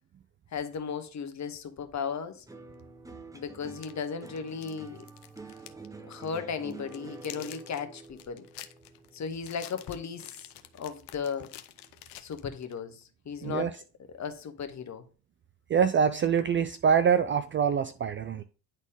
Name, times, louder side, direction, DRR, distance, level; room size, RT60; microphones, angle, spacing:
voice 1, 0.5-2.4 3.3-5.0 6.1-8.4 9.1-10.3 10.8-11.5 12.2-13.7 14.2-15.0, left 6 dB, 35° left, 1.3 m, -36 dB
sound 1, 2.5-10.9 11.2-11.9, right 3 dB, 5° right, 1.0 m, -48 dB
sound 2, 2.8-2.9 3.6-5.9 6.1-6.3 6.7-12.8, left 13 dB, 55° left, 0.8 m, -48 dB
voice 2, 15.7-18.4, right 7 dB, 25° right, 0.4 m, -25 dB
10.0 x 4.0 x 3.6 m
hypercardioid pair, 60°, 48 cm